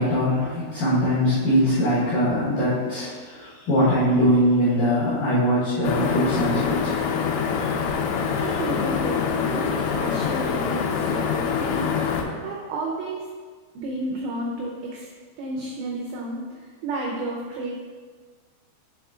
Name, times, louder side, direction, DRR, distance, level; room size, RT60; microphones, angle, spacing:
voice 1, 0.0-7.0, equal, 70° left, -11 dB, 2.1 m, -22 dB
sound 1, 5.8-12.2, left 6 dB, 90° left, 3.3 m, -25 dB
voice 2, 8.3-13.3 13.7-15.1 15.4-17.7, right 2 dB, 85° right, -2 dB, 2.5 m, -32 dB
7.7 x 3.6 x 3.6 m, 1.5 s
omnidirectional pair, 5.9 m